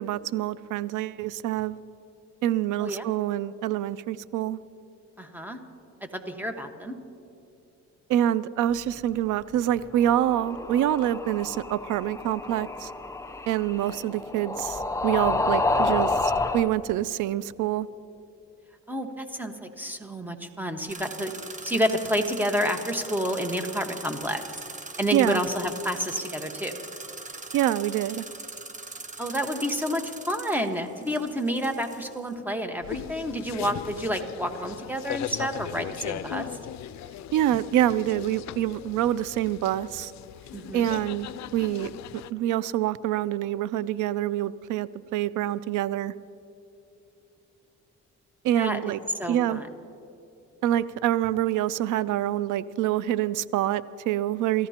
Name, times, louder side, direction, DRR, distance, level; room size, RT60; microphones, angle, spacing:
voice 1, 0.0-1.8 2.4-4.6 8.1-12.9 13.5-17.9 25.1-25.4 27.5-28.2 37.3-40.1 40.7-41.3 41.5-41.9 42.3-46.1 48.4-49.0 49.3-49.6 50.6-54.7, right 12 dB, 85° right, 18 dB, 0.5 m, -26 dB
voice 2, 5.2-5.6 6.1-6.9 18.9-21.3 21.6-24.4 25.0-26.7 29.2-36.5 40.5-40.9 48.5-48.8 49.2-49.7, equal, 5° right, 5 dB, 1.4 m, -29 dB
sound 1, 10.0-16.7, left 3 dB, 10° left, 0.6 m, -29 dB
sound 2, 20.9-32.3, right 3 dB, 25° right, 1.1 m, -41 dB
sound 3, 32.8-42.3, left 12 dB, 65° left, 0.5 m, -38 dB
28.5 x 14.5 x 2.9 m, 2.8 s
cardioid pair, 90°, 30 cm